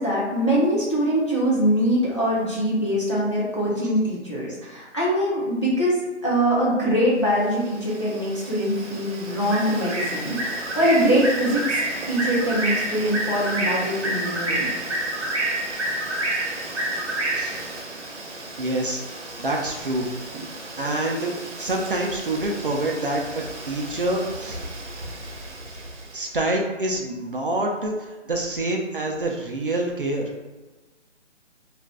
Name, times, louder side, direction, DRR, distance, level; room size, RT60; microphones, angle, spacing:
voice 1, 0.0-10.4 10.7-11.8 12.1-14.7, equal, 25° left, -7 dB, 0.5 m, -23 dB
Bird, 7.4-26.2, right 1 dB, 70° right, 0.8 m, -30 dB
voice 2, 18.6-19.0 19.4-20.1 20.8-21.3 21.6-24.6 26.1-30.3, right 1 dB, 50° right, 0 dB, 0.4 m, -26 dB
2.5 x 2.1 x 3.3 m, 1.2 s
figure-of-eight pair, 165°, 36 cm